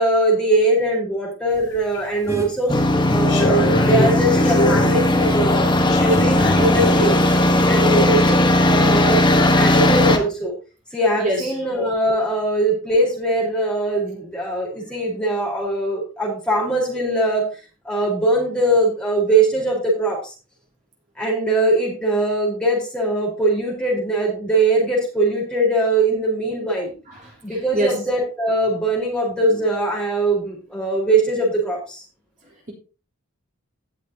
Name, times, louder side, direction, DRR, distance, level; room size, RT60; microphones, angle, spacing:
voice 1, 0.0-2.7 3.1-5.7 6.0-7.2 7.7-10.5 10.9-17.4 17.8-20.3 21.2-26.9 27.4-32.0, right 1 dB, 5° left, 4.3 m, -21 dB
sound 1, 1.6-2.2 2.7-5.1 5.8-7.1, left 1 dB, 60° left, 5.5 m, -24 dB
sound 2, 2.3-2.5 3.9-8.2, right 1 dB, 15° right, 3.4 m, -38 dB
sound 3, 2.7-10.2, left 1 dB, 20° left, 1.3 m, -17 dB
voice 2, 5.6-5.9 9.6-9.7 11.2-11.5 27.2-28.0, right 1 dB, 40° right, 3.6 m, -26 dB
17.5 x 6.4 x 2.9 m
head